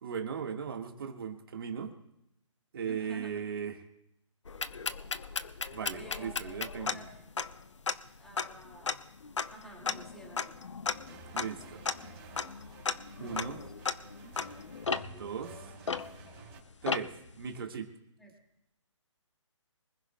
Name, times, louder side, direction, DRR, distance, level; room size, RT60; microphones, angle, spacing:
voice 1, 0.0-1.9 2.7-3.8 5.7-7.0 11.3-11.8 13.2-13.6 15.2-15.5 16.8-17.9, right 7 dB, 45° right, 4 dB, 1.7 m, -37 dB
voice 2, 2.9-3.3 5.9-6.6 6.9-7.3 8.2-8.9 9.5-10.7 13.2-13.7 14.1-14.3 15.1-15.8 18.2-18.3, right 2 dB, ahead, -2 dB, 2.2 m, -52 dB
sound 1, 4.5-16.5 16.9-17.3, left 5 dB, 70° left, 0.8 m, -36 dB
sound 2, 10.9-16.6, right 4 dB, 25° right, 3.3 m, -53 dB
24.5 x 15.0 x 2.3 m, 0.83 s
figure-of-eight pair, 145°, 16 cm